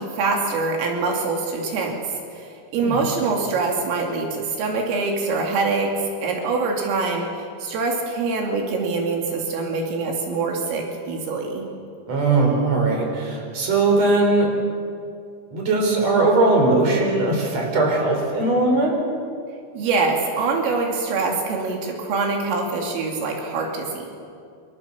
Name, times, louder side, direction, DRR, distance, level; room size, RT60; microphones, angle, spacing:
voice 1, 0.0-2.0 2.3-5.9 6.2-11.7 19.8-24.1, right 3 dB, 80° right, 1 dB, 5.1 m, -24 dB
voice 2, 12.1-14.5 15.5-19.0, right 2 dB, 35° right, 1 dB, 5.8 m, -19 dB
27.5 x 27.0 x 7.1 m, 2.3 s
omnidirectional pair, 5.8 m